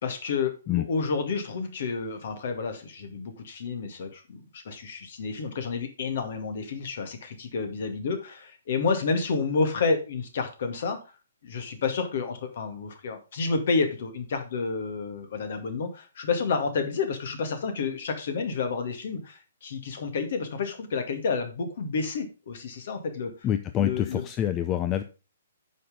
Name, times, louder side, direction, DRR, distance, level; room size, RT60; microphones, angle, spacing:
voice 1, 0.0-11.0 11.4-23.3 23.8-24.3, left 4 dB, 50° left, 7 dB, 2.2 m, -30 dB
voice 2, 23.4-25.0, left 11 dB, 25° left, 10 dB, 0.6 m, -26 dB
9.5 x 5.7 x 5.3 m, 0.32 s
figure-of-eight pair, 125°, 0 cm